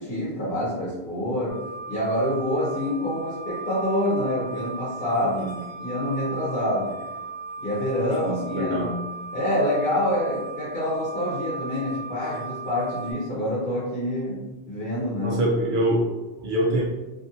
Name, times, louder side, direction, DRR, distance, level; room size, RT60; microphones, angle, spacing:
voice 1, 0.0-1.6 1.9-5.5 5.8-7.0 7.6-8.9 9.3-14.4 14.7-15.4, left 1 dB, 65° left, -8 dB, 1.1 m, -26 dB
sound 1, 1.5-13.1, right 3 dB, 40° left, 1.4 m, -37 dB
voice 2, 5.2-5.6 8.3-9.0 15.2-16.0 16.4-16.8, right 1 dB, 60° right, -2 dB, 0.7 m, -25 dB
2.8 x 2.5 x 2.7 m, 1.1 s
omnidirectional pair, 1.0 m